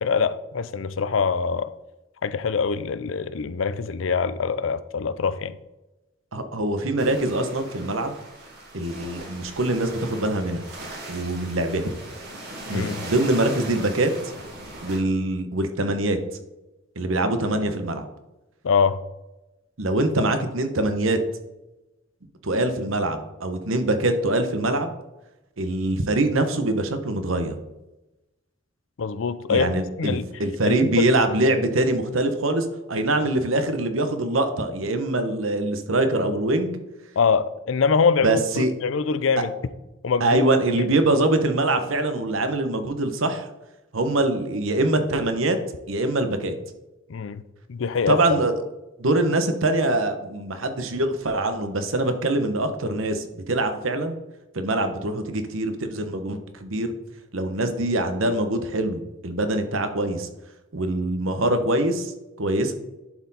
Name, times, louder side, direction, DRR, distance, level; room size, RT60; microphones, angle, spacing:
voice 1, 0.0-1.7 2.2-5.6 12.7-13.0 18.6-19.0 29.0-29.7 30.0-30.3 30.6-31.1 37.2-39.5 40.0-40.5 40.8-40.9 47.1-47.4 47.7-48.2, left 5 dB, 75° left, 0.5 m, -24 dB
voice 2, 6.3-8.1 8.7-10.6 11.1-11.9 12.7-14.1 14.8-16.2 17.0-18.1 19.8-21.2 22.4-24.9 25.6-27.6 29.5-36.8 38.2-38.7 40.2-43.5 43.9-45.6 45.9-46.5 48.1-48.5 49.0-54.2 54.5-56.9 57.3-60.3 60.7-62.1 62.4-62.7, right 2 dB, 90° right, 1.0 m, -23 dB
sound 1, 7.0-15.0, right 1 dB, 55° right, 2.2 m, -39 dB
11.0 x 4.4 x 4.1 m
head